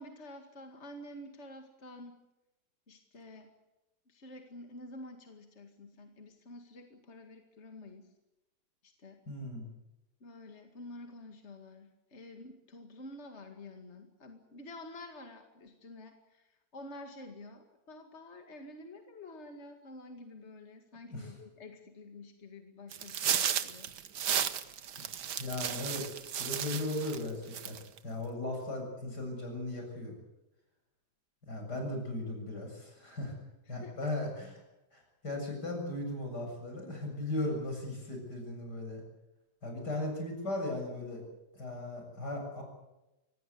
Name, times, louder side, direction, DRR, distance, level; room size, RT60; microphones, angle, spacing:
voice 1, 0.0-2.2 2.9-3.5 4.1-8.1 8.8-9.2 10.2-23.9 33.7-33.9, left 2 dB, 45° left, 5 dB, 2.4 m, -49 dB
voice 2, 9.3-9.7 21.1-21.3 25.4-27.8 28.0-30.2 31.5-33.4 33.7-34.5 34.9-39.0 39.6-41.2 41.5-42.6, left 1 dB, 80° left, 2 dB, 8.1 m, -37 dB
sound 1, 22.9-27.2 27.5-28.0, right 9 dB, 85° right, 1.7 m, -33 dB
25.0 x 18.5 x 8.3 m, 0.97 s
omnidirectional pair, 1.8 m